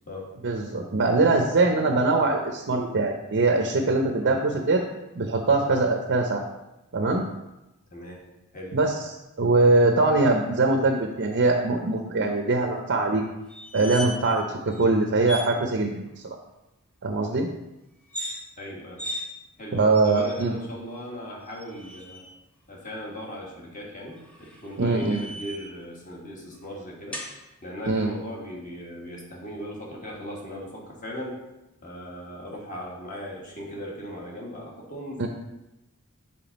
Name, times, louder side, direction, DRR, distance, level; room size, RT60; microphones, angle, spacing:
voice 1, 0.4-4.8 5.1-6.4 6.9-7.2 8.7-8.9 9.4-13.2 13.7-16.4 17.0-17.5 19.7-20.6 24.8-25.2 27.9-28.1 35.2-35.3, right 3 dB, 55° right, 3 dB, 0.6 m, -22 dB
voice 2, 7.9-8.2 8.5-8.8 18.6-19.0 19.6-22.2 22.7-27.2 27.6-31.4 31.8-35.3, equal, 35° left, -3 dB, 1.6 m, -38 dB
sound 1, 13.5-14.4 14.7-14.8 15.2-15.5 18.0-18.4 19.0-19.2 19.9-20.5 21.5-22.3 24.2-25.8 27.1-27.3, equal, 5° left, 1.1 m, -37 dB
5.9 x 3.8 x 5.1 m, 0.95 s
head